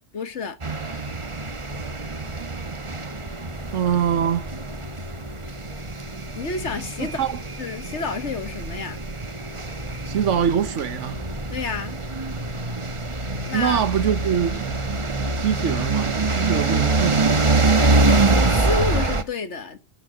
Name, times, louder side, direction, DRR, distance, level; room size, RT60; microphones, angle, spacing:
voice 1, 0.1-0.6 6.3-7.2 7.6-9.0 11.5-12.0 13.5-13.8 18.2-19.8, left 4 dB, 65° left, 1.8 m, -30 dB
sound 1, 0.6-19.2, right 3 dB, 25° right, 1.1 m, -25 dB
voice 2, 3.7-4.5 7.0-7.4 10.1-11.2 13.5-14.7 15.4-17.5, right 8 dB, 70° right, 1.2 m, -24 dB
12.5 x 9.2 x 5.1 m
omnidirectional pair, 1.3 m